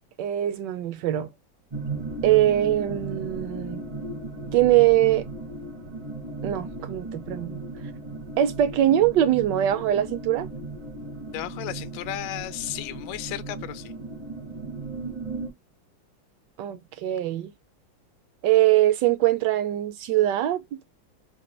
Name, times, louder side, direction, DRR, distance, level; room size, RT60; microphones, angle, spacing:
voice 1, 0.2-1.3 2.2-3.8 4.5-5.3 6.4-7.6 8.4-10.5 16.6-17.5 18.4-20.6, right 13 dB, 75° right, 1.0 m, -22 dB
sound 1, 1.7-15.5, right 2 dB, 40° right, 0.5 m, -36 dB
voice 2, 11.3-13.9, left 13 dB, 75° left, 1.1 m, -34 dB
4.3 x 2.2 x 3.0 m
omnidirectional pair, 2.3 m